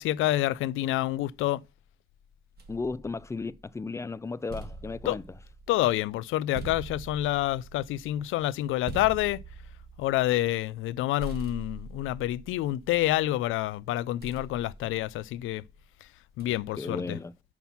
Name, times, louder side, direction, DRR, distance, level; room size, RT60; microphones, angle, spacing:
voice 1, 0.0-1.6 5.1-5.2 5.7-9.4 10.0-15.6 16.4-17.2, left 15 dB, 85° left, 0.4 m, -28 dB
sound 1, 2.6-3.8 4.2-10.9 11.2-13.4 14.2-15.7 16.4-16.8, right 3 dB, 55° right, 1.9 m, -43 dB
voice 2, 2.7-5.2 16.8-17.3, left 3 dB, 15° left, 0.4 m, -34 dB
6.0 x 5.5 x 5.8 m
cardioid pair, 90°, 20 cm